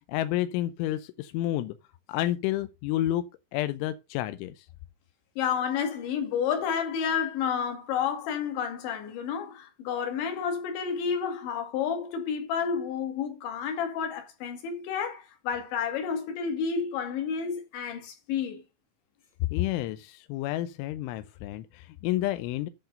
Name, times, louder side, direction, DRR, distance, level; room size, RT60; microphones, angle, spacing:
voice 1, 0.1-1.8 2.1-4.7 19.5-22.7, left 14 dB, 80° left, 2.9 m, -30 dB
voice 2, 5.4-18.6, left 7 dB, 65° left, 4.2 m, -30 dB
10.5 x 4.7 x 6.6 m
omnidirectional pair, 5.9 m